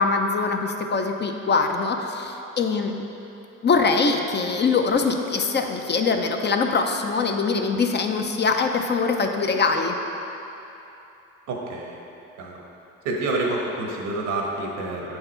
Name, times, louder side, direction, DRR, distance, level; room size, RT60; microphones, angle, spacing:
voice 1, 0.0-2.9 3.6-9.9, left 4 dB, 35° left, 4 dB, 0.6 m, -23 dB
voice 2, 11.5-12.0 12.4-12.6 13.0-15.2, right 2 dB, 85° right, -1 dB, 1.2 m, -28 dB
7.7 x 4.8 x 4.4 m, 2.9 s
cardioid pair, 90°, 30 cm